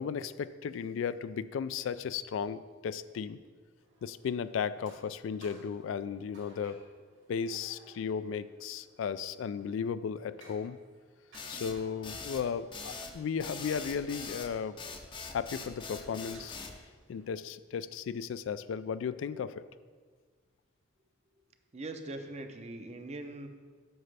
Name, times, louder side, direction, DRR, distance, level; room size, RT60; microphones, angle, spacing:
voice 1, 0.0-3.4 4.0-6.8 7.3-10.8 11.5-14.8 15.3-16.6 17.1-19.6, left 6 dB, 85° left, 14 dB, 0.3 m, -35 dB
sound 1, 3.8-17.3, right 1 dB, 70° right, 2.3 m, -61 dB
sound 2, 11.3-16.8, left 4 dB, 25° left, 0.5 m, -42 dB
voice 2, 21.7-23.5, right 2 dB, 35° right, 6 dB, 0.6 m, -41 dB
8.8 x 6.6 x 3.3 m, 1.5 s
head